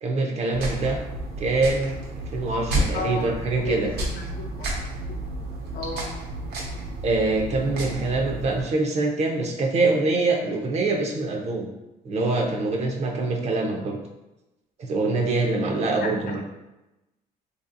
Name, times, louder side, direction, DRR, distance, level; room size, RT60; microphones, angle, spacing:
voice 1, 0.0-1.0 1.4-2.0 2.3-3.9 7.0-11.7 12.0-14.0 14.8-16.4, right 3 dB, 40° right, 1 dB, 0.5 m, -24 dB
sound 1, 0.5-8.6, right 1 dB, 75° right, 0.9 m, -31 dB
voice 2, 2.9-3.3 3.6-4.7 5.7-6.1 16.0-16.1, left 3 dB, 55° left, 1 dB, 0.6 m, -33 dB
3.1 x 2.7 x 2.5 m, 0.98 s
cardioid pair, 110°, 17 cm